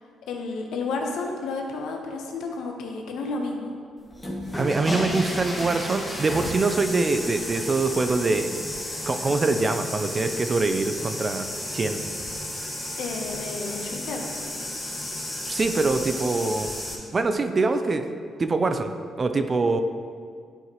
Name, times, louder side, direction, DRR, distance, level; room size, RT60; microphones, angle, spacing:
voice 1, 0.3-3.7 13.0-14.2, left 3 dB, 80° left, 2 dB, 0.9 m, -31 dB
sound 1, 4.1-16.9, left 1 dB, 10° left, 1.6 m, -32 dB
voice 2, 4.6-8.5 9.1-12.0 15.5-16.7 17.1-18.0 18.4-18.9 19.2-19.8, right 3 dB, 35° right, 8 dB, 0.5 m, -24 dB
11.0 x 4.6 x 3.0 m, 2.1 s
cardioid pair, 90°, 0 cm